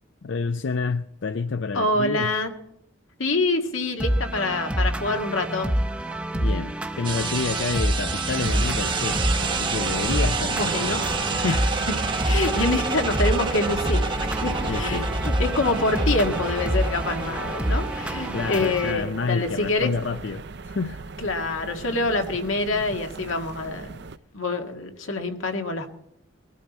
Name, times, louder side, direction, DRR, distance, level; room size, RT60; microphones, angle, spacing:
voice 1, 0.2-2.3 6.3-10.8 11.3-11.8 14.7-15.1 18.3-21.0, left 4 dB, 70° left, 12 dB, 0.5 m, -29 dB
voice 2, 1.7-2.5 3.2-5.7 10.5-11.1 11.4-11.6 12.2-14.1 14.4-19.9 21.2-24.0 24.3-25.9, left 2 dB, 90° left, 4 dB, 1.9 m, -26 dB
sound 1, 4.0-18.9, equal, 5° right, 0.6 m, -27 dB
sound 2, 7.0-19.1, right 3 dB, 25° right, 0.9 m, -29 dB
sound 3, 8.3-24.2, right 4 dB, 55° right, 0.5 m, -37 dB
20.5 x 12.5 x 4.2 m, 0.77 s
head